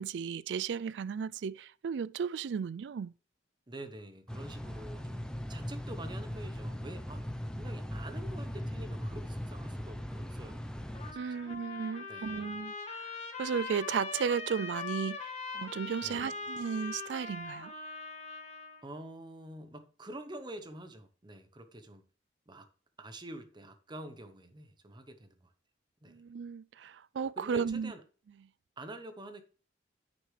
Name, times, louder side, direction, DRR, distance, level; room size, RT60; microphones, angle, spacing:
voice 1, 0.0-3.1 11.1-17.7 26.1-27.9, right 6 dB, 65° right, 0.3 m, -35 dB
voice 2, 3.7-5.2 5.5-7.3 7.6-10.9 11.3-11.4 12.1-12.6 16.0-16.4 18.8-22.0 22.5-22.7 23.0-25.5 26.0-26.2 27.4-28.0 28.8-29.4, right 1 dB, 25° right, 0.9 m, -47 dB
sound 1, 4.3-11.1, equal, 5° left, 0.6 m, -39 dB
Trumpet, 10.9-18.8, left 4 dB, 35° left, 1.5 m, -41 dB
9.3 x 6.5 x 3.3 m
head